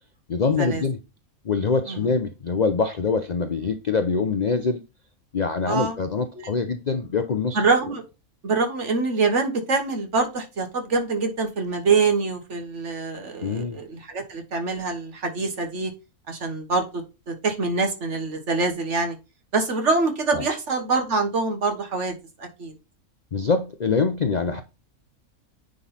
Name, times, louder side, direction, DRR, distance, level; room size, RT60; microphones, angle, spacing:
voice 1, 0.3-1.0 1.4-4.8 5.3-7.6 13.4-13.8 20.3-20.4 23.3-24.6, left 4 dB, 50° left, 0.5 m, -24 dB
voice 2, 7.6-8.0 8.4-15.9 16.3-19.2 19.5-22.1 22.4-22.7, right 4 dB, 55° right, 1.7 m, -25 dB
9.6 x 3.9 x 4.2 m
omnidirectional pair, 1.5 m